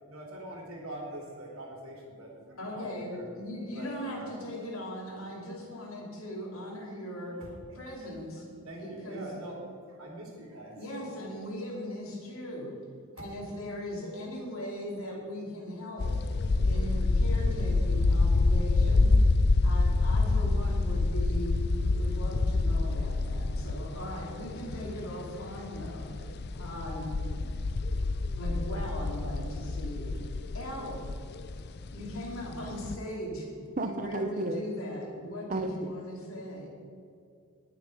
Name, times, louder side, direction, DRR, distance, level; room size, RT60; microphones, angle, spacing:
voice 1, 0.1-3.2 3.7-4.3 7.4-7.6 8.6-9.6 9.9-10.8, right 1 dB, 70° right, -1 dB, 3.0 m, -43 dB
voice 2, 2.6-7.4 7.7-9.3 10.7-12.7 13.1-16.2 16.6-19.1 19.6-27.5 28.4-31.0 31.9-33.5 33.8-36.7, equal, 65° left, -3 dB, 2.8 m, -39 dB
sound 1, 16.0-33.0, left 3 dB, 45° left, 0.4 m, -27 dB
voice 3, 33.8-34.6 35.5-35.9, right 2 dB, 35° right, 7 dB, 0.6 m, -32 dB
19.0 x 6.8 x 4.8 m, 2.4 s
head